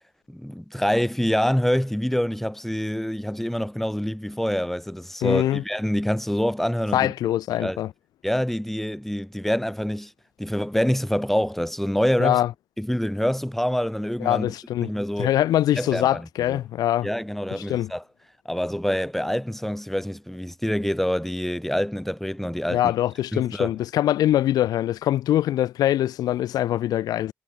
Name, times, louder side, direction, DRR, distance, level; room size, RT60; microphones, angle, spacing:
voice 1, 0.3-7.1 7.5-7.8 8.2-10.1 10.4-12.4 12.8-14.5 14.8-15.3 15.7-16.6 17.0-18.0 18.5-22.9 23.3-23.7, equal, 5° left, 7.4 m, -26 dB
voice 2, 5.2-5.6 6.9-7.9 12.2-12.5 14.2-14.9 15.2-17.1 17.7-17.9 22.7-27.3, left 13 dB, 90° left, 1.7 m, -23 dB
cardioid pair, 60°, 6 cm